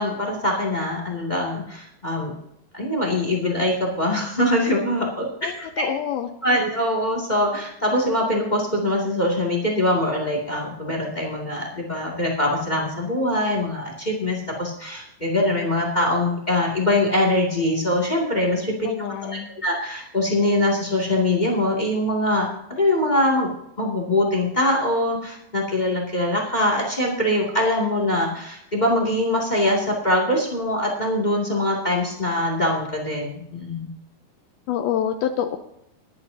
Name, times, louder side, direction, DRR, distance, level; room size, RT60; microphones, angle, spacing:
voice 1, 0.0-2.3 2.7-5.3 5.6-5.8 6.4-18.7 19.0-19.1 19.6-23.5 23.8-33.9, left 1 dB, 20° left, 0 dB, 1.3 m, -23 dB
voice 2, 5.4-6.3 18.8-19.5 34.7-35.6, left 9 dB, 80° left, 6 dB, 2.5 m, -26 dB
21.5 x 9.9 x 2.7 m, 0.80 s
omnidirectional pair, 4.5 m